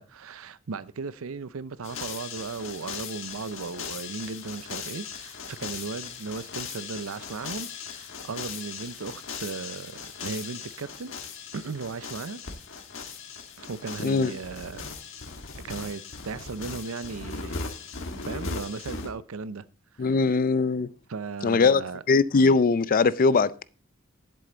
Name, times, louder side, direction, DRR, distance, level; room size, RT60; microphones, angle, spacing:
voice 1, 0.0-11.1 11.5-12.4 13.6-14.8 15.6-17.6 18.2-19.7 19.9-20.2 21.1-22.0, right 4 dB, 85° right, 0.6 m, -36 dB
sound 1, 1.8-19.1, left 5 dB, 65° left, 1.5 m, -38 dB
voice 2, 20.0-20.9 21.4-21.8 22.1-23.6, left 4 dB, 45° left, 0.4 m, -21 dB
10.5 x 7.7 x 3.9 m
head